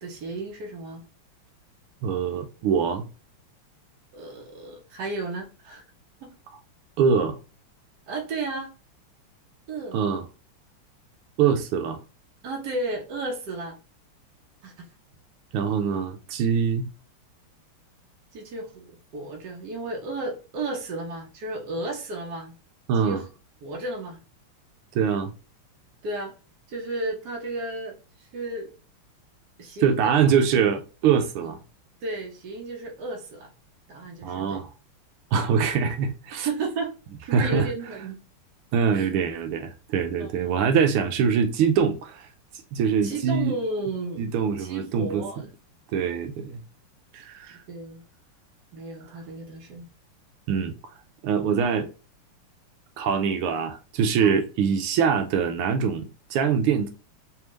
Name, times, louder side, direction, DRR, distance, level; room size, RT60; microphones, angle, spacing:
voice 1, 0.0-1.0 4.1-5.8 6.2-6.3 8.1-8.7 9.7-10.0 12.4-13.7 14.6-14.8 18.3-22.5 23.0-23.2 23.6-24.2 26.0-26.3 26.7-27.9 28.3-28.7 29.6-30.2 32.0-33.5 33.9-34.6 36.4-36.9 37.2-38.2 38.9-39.1 40.2-40.5 43.0-44.3 44.6-45.4 47.7-48.0 48.7-49.9 54.2-54.3, right 2 dB, 55° right, 1.4 m, -33 dB
voice 2, 2.0-3.0 7.0-7.4 9.9-10.2 11.4-12.0 15.5-16.9 22.9-23.2 24.9-25.3 29.8-31.6 34.2-34.7 35.3-36.5 37.3-37.7 38.7-42.3 42.7-43.5 44.2-45.2 45.9-46.6 47.1-47.6 50.5-50.7 51.2-51.9 53.0-56.9, right 6 dB, 85° right, 1.5 m, -23 dB
3.5 x 3.3 x 3.0 m
omnidirectional pair, 2.4 m